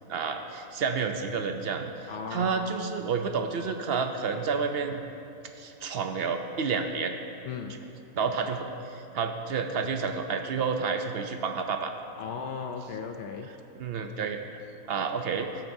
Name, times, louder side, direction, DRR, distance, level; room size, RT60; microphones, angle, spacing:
voice 1, 0.1-1.9 2.3-5.0 5.6-7.2 8.1-11.9 13.8-14.4 14.9-15.5, right 5 dB, 65° right, 6 dB, 0.6 m, -30 dB
voice 2, 2.1-2.7 7.5-7.8 12.2-13.5, left 6 dB, 70° left, 4 dB, 0.6 m, -36 dB
16.0 x 8.4 x 2.7 m, 3.0 s
omnidirectional pair, 1.6 m